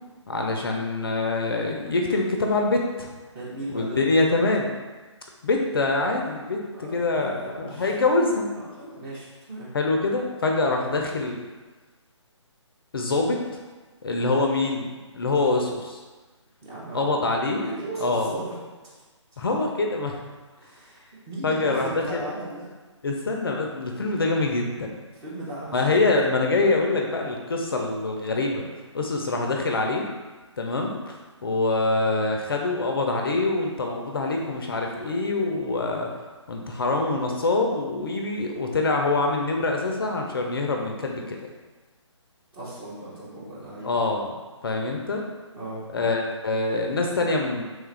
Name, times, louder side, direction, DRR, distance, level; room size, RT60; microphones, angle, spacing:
voice 1, 0.3-3.1 3.7-4.7 5.4-8.5 9.7-11.4 12.9-13.4 14.0-16.0 16.9-17.7 18.0-18.3 19.4-20.2 21.4-22.2 23.0-24.9 25.7-28.6 28.9-30.1 30.6-31.0 31.4-36.1 36.5-41.4 43.8-44.3 44.6-45.2 45.9-47.6, left 3 dB, 50° left, 1 dB, 0.4 m, -25 dB
voice 2, 3.3-4.0 6.7-7.9 8.5-9.7 16.6-17.1 17.5-18.6 20.6-22.7 25.1-25.8 42.5-43.9 45.5-45.8, right 2 dB, 15° right, -8 dB, 0.6 m, -37 dB
3.2 x 2.3 x 3.2 m, 1.3 s
figure-of-eight pair, 145°, 16 cm